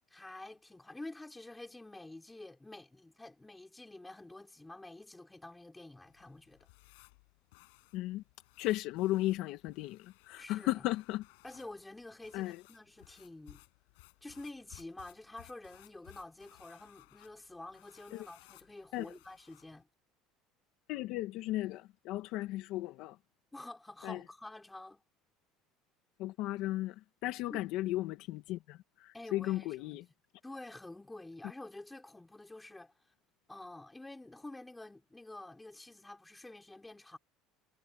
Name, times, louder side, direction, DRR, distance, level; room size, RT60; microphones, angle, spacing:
voice 1, 0.1-6.7 10.4-10.8 11.4-13.6 14.2-19.9 23.5-25.0 27.5-27.6 29.1-30.0 30.4-32.9 33.5-37.2, left 2 dB, 10° left, 5.6 m, -49 dB
sound 1, 6.1-19.8, left 30 dB, 90° left, 7.4 m, -61 dB
voice 2, 7.9-8.2 8.6-11.2 12.3-12.6 18.1-18.3 18.9-19.1 20.9-23.2 24.0-24.2 26.2-26.9 27.2-28.8 29.0-30.0, left 16 dB, 65° left, 1.9 m, -35 dB
cardioid pair, 145°, 0 cm